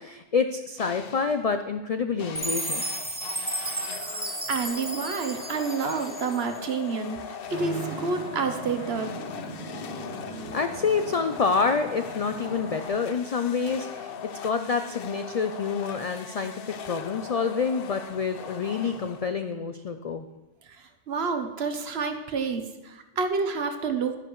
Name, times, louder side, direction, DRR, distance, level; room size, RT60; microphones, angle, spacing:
voice 1, 0.0-2.8 10.5-14.1 14.4-20.3, left 5 dB, 75° left, 8 dB, 0.3 m, -27 dB
sound 1, 0.8-1.4 2.2-19.5, left 7 dB, 60° left, 0.7 m, -40 dB
Chime, 2.4-6.6, right 1 dB, 10° right, 0.6 m, -33 dB
voice 2, 4.0-7.2 7.5-9.1 21.1-24.2, right 5 dB, 60° right, 7 dB, 1.1 m, -29 dB
Traffic noise roadway noise, 7.5-12.9, right 2 dB, 40° right, 2.3 m, -39 dB
11.0 x 10.0 x 3.1 m, 1.0 s
omnidirectional pair, 1.2 m